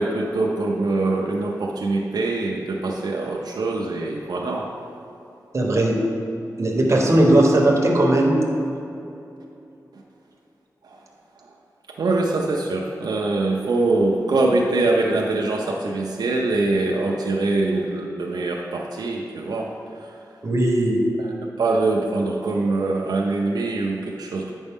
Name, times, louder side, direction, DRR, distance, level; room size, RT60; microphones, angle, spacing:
voice 1, 0.0-4.7 10.8-11.0 11.9-20.2 21.2-24.5, right 2 dB, 85° right, -1 dB, 0.6 m, -23 dB
voice 2, 5.5-6.0 6.6-8.5 20.4-21.0, right 1 dB, 45° right, -1 dB, 1.1 m, -18 dB
8.8 x 5.2 x 3.6 m, 2.8 s
wide cardioid pair, 125°, 7 cm